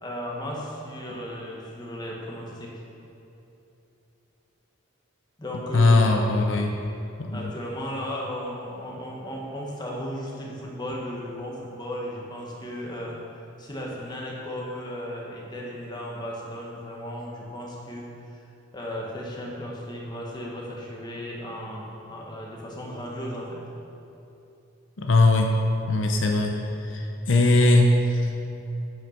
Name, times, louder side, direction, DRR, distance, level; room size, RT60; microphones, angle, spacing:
voice 1, 0.0-2.7 5.4-6.2 7.3-13.2 13.6-18.4 18.7-23.6, equal, 20° left, -3 dB, 1.5 m, -35 dB
voice 2, 5.7-6.7 7.2-7.5 25.0-25.5 25.9-26.6 26.8-28.3, left 2 dB, 75° left, 3 dB, 0.7 m, -20 dB
8.8 x 6.4 x 5.9 m, 2.9 s
head